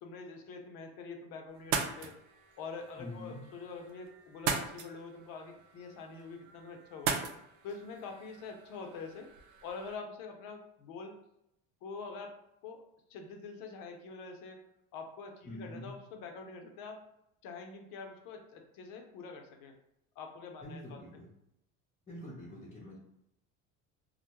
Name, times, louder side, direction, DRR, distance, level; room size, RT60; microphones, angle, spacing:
voice 1, 0.0-2.2 2.6-7.2 7.6-9.3 9.6-11.2 11.8-12.4 12.6-12.8 13.1-14.6 14.9-17.0 17.4-19.7 20.2-21.0, left 4 dB, 65° left, 3 dB, 0.6 m, -45 dB
sound 1, 1.5-10.0, right 6 dB, 75° right, 0.5 m, -40 dB
voice 2, 3.0-3.4 15.4-15.9 20.6-21.3 22.1-23.0, left 1 dB, 20° left, -8 dB, 0.8 m, -45 dB
2.1 x 2.1 x 2.9 m, 0.82 s
supercardioid pair, 100°, 37 cm